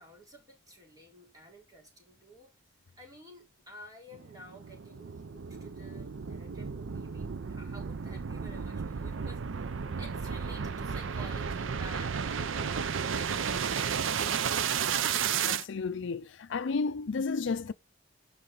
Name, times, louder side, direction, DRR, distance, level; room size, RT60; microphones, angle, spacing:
voice 1, 0.0-2.5 3.0-9.7 10.0-14.7, equal, 20° right, 3.9 m, -52 dB
sound 1, 4.1-15.6, right 7 dB, 75° right, 0.6 m, -33 dB
voice 2, 15.4-17.7, left 4 dB, 65° left, 0.5 m, -32 dB
12.5 x 5.8 x 3.9 m
head